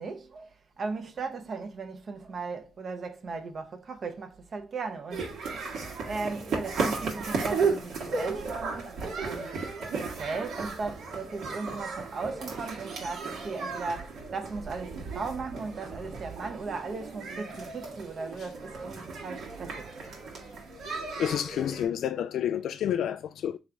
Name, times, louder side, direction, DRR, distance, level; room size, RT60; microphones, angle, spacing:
voice 1, 0.0-5.3 5.8-20.0, right 4 dB, 50° right, 0.9 m, -37 dB
sound 1, 5.1-21.9, right 4 dB, 75° right, 1.4 m, -35 dB
voice 2, 21.2-23.6, left 9 dB, 75° left, 0.3 m, -29 dB
3.8 x 3.1 x 3.3 m
cardioid pair, 80°, 0 cm